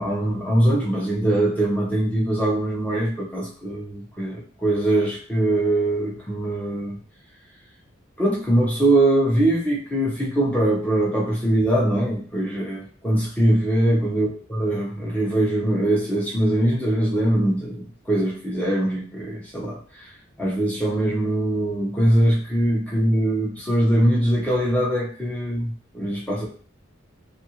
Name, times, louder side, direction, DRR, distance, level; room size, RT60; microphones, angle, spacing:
voice 1, 0.0-7.0 8.2-20.1 20.4-26.5, right 1 dB, 5° left, -4 dB, 0.7 m, -22 dB
2.7 x 2.5 x 2.8 m, 0.44 s
head